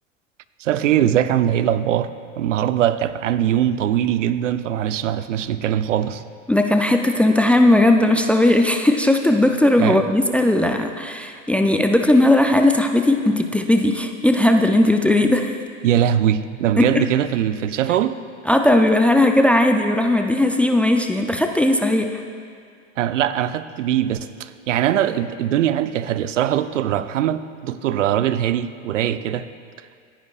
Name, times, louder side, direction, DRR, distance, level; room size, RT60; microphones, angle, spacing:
voice 1, 0.6-6.2 9.8-10.0 15.8-18.2 23.0-29.5, right 10 dB, 75° right, 0.6 m, -21 dB
voice 2, 6.5-15.5 16.8-17.0 18.5-22.2, left 1 dB, 5° left, 0.4 m, -17 dB
25.5 x 10.0 x 2.4 m
hypercardioid pair, 95°, 37 cm